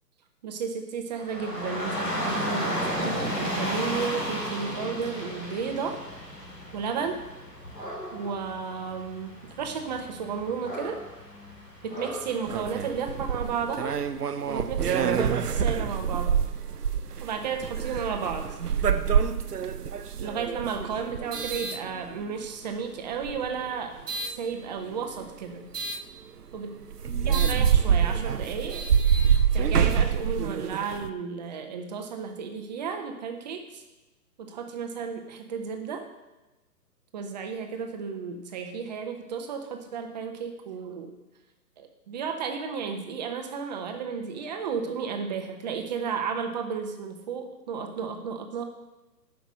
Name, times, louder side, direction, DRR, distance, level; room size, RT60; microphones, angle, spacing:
voice 1, 0.4-6.0 6.7-7.2 8.1-11.0 11.8-14.0 14.5-16.4 17.2-18.4 20.2-23.9 24.3-25.7 26.5-26.7 27.3-28.8 29.5-33.8 34.4-36.1 37.1-41.1 41.8-48.6, right 6 dB, 25° right, 5 dB, 0.9 m, -33 dB
Dog / Rain, 1.2-13.3, equal, 90° left, 2.8 m, -34 dB
sound 1, 12.4-22.5 23.1-24.4 25.7-26.0 26.5-26.6 26.9-31.1, right 7 dB, 75° right, 0.8 m, -26 dB
8.1 x 6.1 x 7.4 m, 1.1 s
figure-of-eight pair, 130°, 48 cm